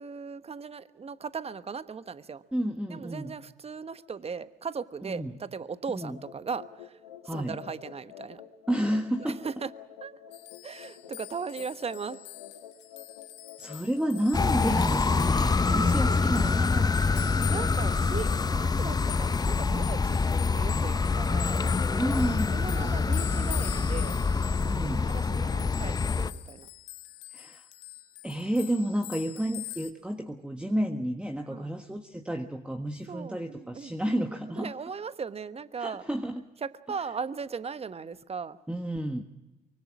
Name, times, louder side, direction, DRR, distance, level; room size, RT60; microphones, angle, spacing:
voice 1, 0.0-2.4 2.9-7.0 7.3-8.4 9.2-9.7 10.0-10.1 10.6-12.2 15.7-16.5 17.5-21.6 22.5-24.2 25.1-26.7 31.5-31.7 33.1-33.9 34.6-36.0 36.6-38.6, right 5 dB, 30° right, 13 dB, 1.2 m, -38 dB
voice 2, 2.5-3.4 5.0-5.3 5.9-6.2 7.2-7.6 8.7-9.5 13.6-17.0 22.0-23.0 24.6-25.1 27.3-27.6 28.2-34.7 35.8-36.4 38.7-39.2, right 1 dB, 5° right, 5 dB, 1.5 m, -31 dB
sound 1, 6.0-14.2, left 9 dB, 85° left, 1.4 m, -49 dB
sound 2, 10.3-29.9, left 18 dB, 70° left, 1.4 m, -44 dB
sound 3, 14.3-26.3, left 4 dB, 20° left, 0.9 m, -26 dB
24.5 x 24.0 x 6.2 m, 1.1 s
hypercardioid pair, 50°, 19 cm